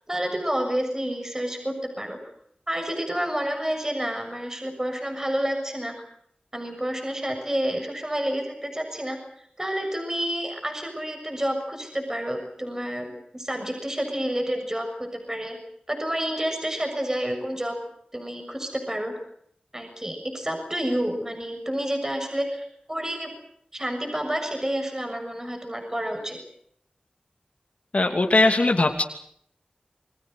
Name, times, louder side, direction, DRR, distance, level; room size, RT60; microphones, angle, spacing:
voice 1, 0.1-2.2 2.7-6.0 6.5-9.2 9.6-15.6 15.9-17.8 18.1-19.1 19.7-23.3 23.7-26.4, equal, 20° right, 4 dB, 6.8 m, -29 dB
voice 2, 27.9-29.0, left 2 dB, 50° left, 4 dB, 2.8 m, -20 dB
28.5 x 22.5 x 6.5 m, 0.68 s
wide cardioid pair, 70°, 3 cm